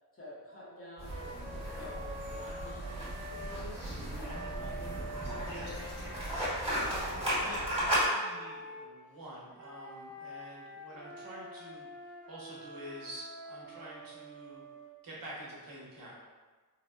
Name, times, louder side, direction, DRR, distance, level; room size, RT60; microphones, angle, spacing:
voice 1, 0.1-6.2, equal, 35° left, -6 dB, 0.7 m, -50 dB
sound 1, 1.0-8.1, equal, 15° right, 1.2 m, -35 dB
Wind instrument woodwind instrument, 1.1-3.6 4.2-8.9 9.5-14.9, right 1 dB, 30° right, 0.4 m, -46 dB
voice 2, 6.7-14.6 15.0-16.2, right 1 dB, 60° right, -6 dB, 0.9 m, -47 dB
3.9 x 2.1 x 2.2 m, 1.4 s
wide cardioid pair, 130°, 38 cm